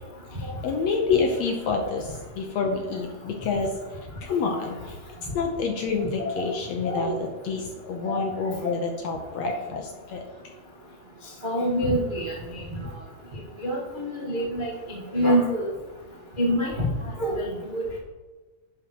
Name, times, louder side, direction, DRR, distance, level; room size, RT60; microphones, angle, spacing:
voice 1, 0.4-3.7 4.2-5.0 5.3-9.8 10.1-10.2, left 4 dB, 70° left, 3 dB, 1.8 m, -28 dB
voice 2, 6.2-6.5 6.8-7.0 9.4-9.5 11.4-12.3 13.6-15.7 16.4-16.9 17.2-18.0, equal, 35° right, -5 dB, 0.7 m, -26 dB
11.0 x 8.8 x 3.0 m, 1.2 s
omnidirectional pair, 3.8 m